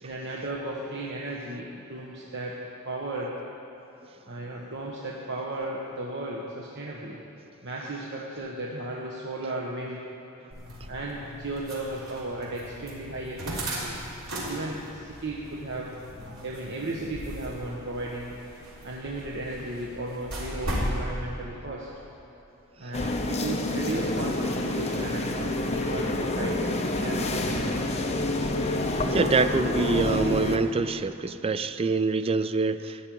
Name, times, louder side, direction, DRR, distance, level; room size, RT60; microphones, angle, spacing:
voice 1, 0.0-2.6 2.8-3.3 4.3-7.2 7.6-10.0 10.9-14.0 14.5-16.0 16.4-18.4 18.8-21.9 22.8-28.0, right 2 dB, 60° right, -3 dB, 1.2 m, -35 dB
sound 1, 10.5-21.0, equal, 90° right, 3.6 m, -37 dB
sound 2, 22.9-30.6, left 1 dB, 30° left, 0.9 m, -28 dB
voice 2, 29.0-33.0, right 4 dB, 30° right, 12 dB, 0.4 m, -25 dB
13.0 x 6.7 x 9.2 m, 3.0 s
head